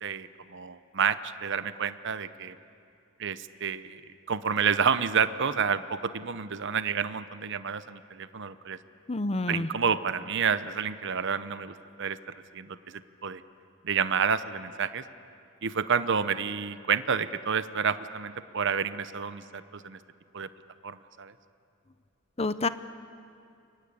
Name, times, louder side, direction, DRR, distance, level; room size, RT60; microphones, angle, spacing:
voice 1, 0.0-2.5 3.2-4.0 4.3-8.8 9.5-12.2 12.5-13.4 13.8-15.0 15.6-20.0 20.3-20.5 20.8-21.3, right 6 dB, 60° right, 13 dB, 0.8 m, -29 dB
voice 2, 9.1-9.7 22.4-22.7, left 2 dB, 30° left, 13 dB, 0.7 m, -28 dB
29.5 x 23.5 x 8.7 m, 2.5 s
head